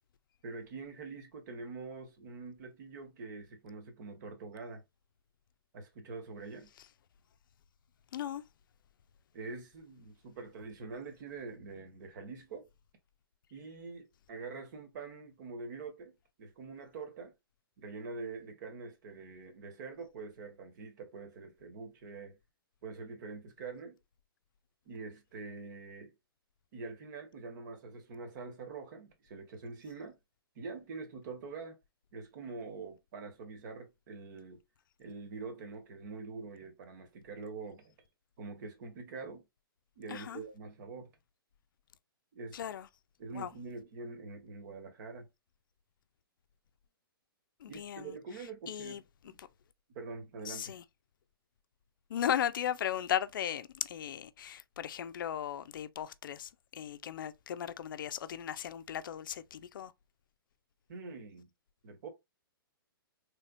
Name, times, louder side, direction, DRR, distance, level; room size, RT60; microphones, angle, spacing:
voice 1, 0.4-4.8 5.7-6.7 9.3-12.7 13.5-17.3 17.8-22.4 22.8-24.0 24.9-26.1 26.7-30.2 30.5-31.8 32.1-34.6 35.0-37.9 38.4-39.4 40.0-41.1 42.3-42.6 43.2-45.3 47.7-49.0 49.2-49.4 49.9-50.8 60.9-61.5 61.8-62.1, right 4 dB, 50° right, 1.4 m, -45 dB
voice 2, 8.1-8.4 40.1-40.4 42.5-42.9 43.3-43.5 47.6-49.5 50.4-50.8 52.1-59.9, left 10 dB, 60° left, 0.5 m, -37 dB
4.1 x 3.4 x 2.5 m
figure-of-eight pair, 120°, 12 cm